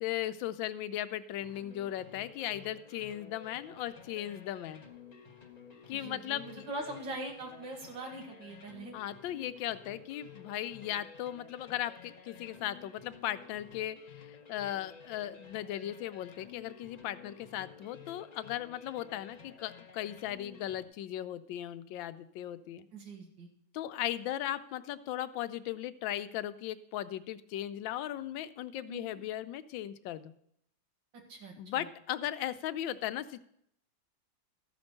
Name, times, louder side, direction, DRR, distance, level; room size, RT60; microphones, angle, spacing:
voice 1, 0.0-4.8 5.9-6.4 8.9-22.9 23.7-30.3 31.6-33.4, left 12 dB, 90° left, 12 dB, 1.3 m, -37 dB
sound 1, 1.4-20.9, left 6 dB, 30° left, 0.8 m, -53 dB
voice 2, 5.9-8.9 22.9-23.5 28.9-29.2 31.3-31.5, right 2 dB, 75° right, 2 dB, 2.5 m, -42 dB
13.5 x 5.3 x 6.5 m, 0.71 s
omnidirectional pair, 2.0 m